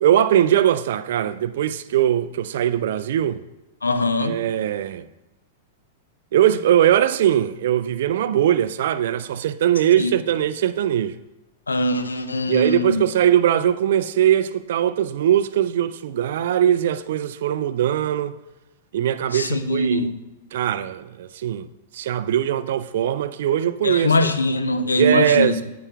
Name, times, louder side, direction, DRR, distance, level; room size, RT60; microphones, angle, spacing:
voice 1, 0.0-3.4 4.2-5.1 6.3-11.2 12.5-18.3 18.9-20.1 20.5-21.7 21.9-24.3 25.0-25.7, right 11 dB, 55° right, 0.3 m, -20 dB
voice 2, 3.8-4.3 10.0-10.1 11.7-13.0 19.3-20.1 23.8-25.5, left 2 dB, 80° left, 0.5 m, -21 dB
9.7 x 8.4 x 2.4 m
figure-of-eight pair, 100°, 0 cm